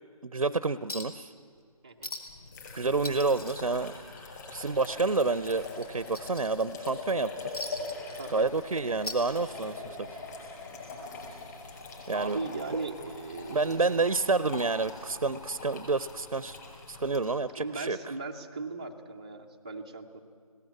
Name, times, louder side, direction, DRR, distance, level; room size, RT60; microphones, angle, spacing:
voice 1, 0.2-1.3 2.7-4.0 4.5-7.5 8.3-10.2 12.1-12.4 13.5-16.6 16.9-18.1, right 3 dB, 70° right, 15 dB, 0.6 m, -29 dB
Chink clink, 0.9-1.3 1.6-1.7 2.0-2.5 2.8-4.5 4.8-5.0 5.5-6.9 7.5-8.6 8.9-9.9 11.0-11.1, left 1 dB, 75° left, 2.6 m, -41 dB
sound 1, 2.3-17.2, left 3 dB, 30° left, 5.3 m, -42 dB
voice 2, 8.2-8.5 12.1-13.8 17.6-20.2, right 3 dB, 10° right, -1 dB, 0.5 m, -38 dB
19.0 x 17.5 x 8.4 m, 2.1 s
figure-of-eight pair, 155°, 19 cm